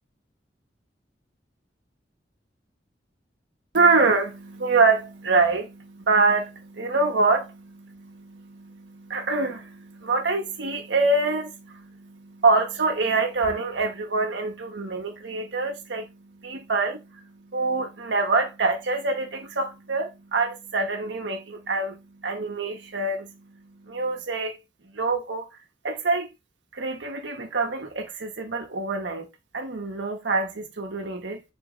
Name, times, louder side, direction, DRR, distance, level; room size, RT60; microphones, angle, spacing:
voice 1, 3.7-23.3 23.8-24.6 24.9-25.5 25.8-26.3 26.7-29.3 29.5-31.4, right 3 dB, 75° right, 1.0 m, -25 dB
4.3 x 3.1 x 3.7 m
head